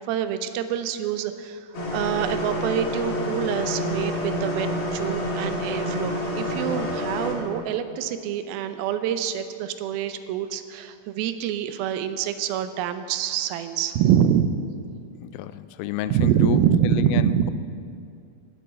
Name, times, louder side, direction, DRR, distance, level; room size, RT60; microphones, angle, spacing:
voice 1, 0.0-14.6 16.1-17.5, right 9 dB, 85° right, 10 dB, 2.5 m, -25 dB
sound 1, 1.7-7.3, left 1 dB, 45° left, 2.8 m, -28 dB
voice 2, 15.2-16.6 16.8-17.5, left 12 dB, 85° left, 13 dB, 2.4 m, -30 dB
17.5 x 7.8 x 6.6 m, 2.4 s
omnidirectional pair, 4.3 m